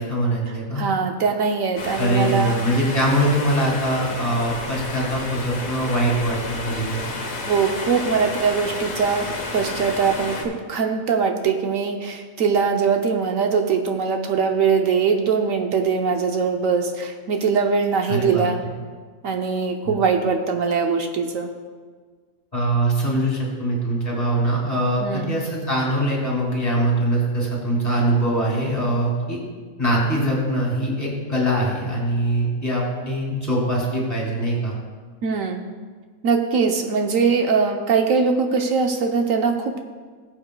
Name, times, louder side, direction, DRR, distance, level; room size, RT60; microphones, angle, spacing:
voice 1, 0.0-0.8 2.0-7.1 18.1-18.5 19.8-19.9 22.5-29.4 29.8-34.7, right 1 dB, 25° left, -3 dB, 2.4 m, -22 dB
voice 2, 0.8-2.6 7.5-18.6 19.2-21.5 25.0-25.4 35.2-35.7 36.2-39.8, right 5 dB, 70° right, 4 dB, 1.1 m, -22 dB
sound 1, 1.8-10.4, left 2 dB, 70° left, 1.6 m, -31 dB
18.5 x 7.7 x 2.2 m, 1.5 s
omnidirectional pair, 1.5 m